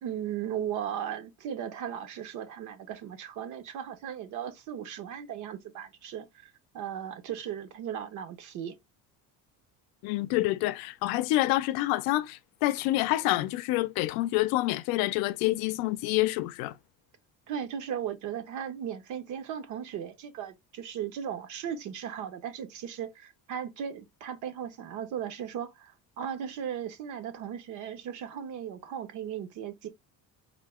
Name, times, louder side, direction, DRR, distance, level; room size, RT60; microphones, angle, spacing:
voice 1, 0.0-8.8 17.5-29.9, right 9 dB, 55° right, 0.9 m, -37 dB
voice 2, 10.0-16.7, left 17 dB, 85° left, 0.5 m, -27 dB
3.7 x 2.8 x 3.5 m
cardioid pair, 160°, 35 cm